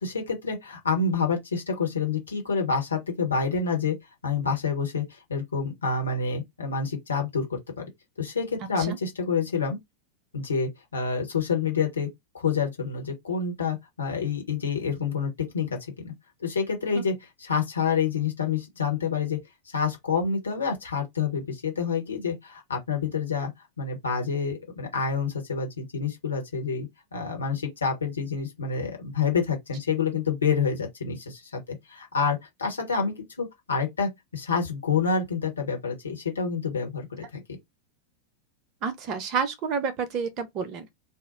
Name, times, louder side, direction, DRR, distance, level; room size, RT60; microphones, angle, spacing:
voice 1, 0.0-3.9 4.2-7.9 8.2-9.8 10.3-12.1 12.3-16.1 16.4-19.4 19.7-23.5 23.8-37.4, left 5 dB, 70° left, 1.0 m, -28 dB
voice 2, 8.6-9.0 16.9-17.0 38.8-40.9, right 5 dB, 35° right, 0.7 m, -30 dB
2.7 x 2.1 x 3.7 m
figure-of-eight pair, 90°, 0 cm